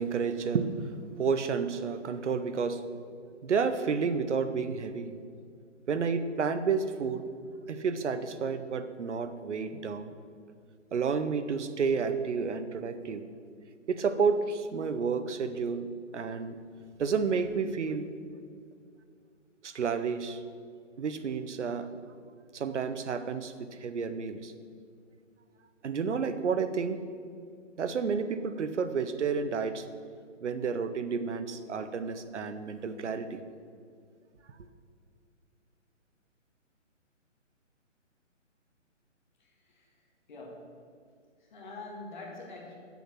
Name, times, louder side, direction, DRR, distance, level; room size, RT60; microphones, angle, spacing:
voice 1, 0.0-2.8 3.4-5.2 5.9-7.3 7.7-10.1 10.9-13.2 13.9-15.9 16.1-16.6 17.0-18.1 19.6-20.4 21.0-21.9 22.5-24.5 25.8-27.1 27.8-29.9 30.4-33.4, right 5 dB, 65° right, 11 dB, 0.8 m, -30 dB
voice 2, 39.4-40.0 40.3-40.8 41.4-42.8, left 2 dB, 40° left, -1 dB, 1.8 m, -45 dB
7.5 x 7.2 x 6.0 m, 2.3 s
hypercardioid pair, 160°, 38 cm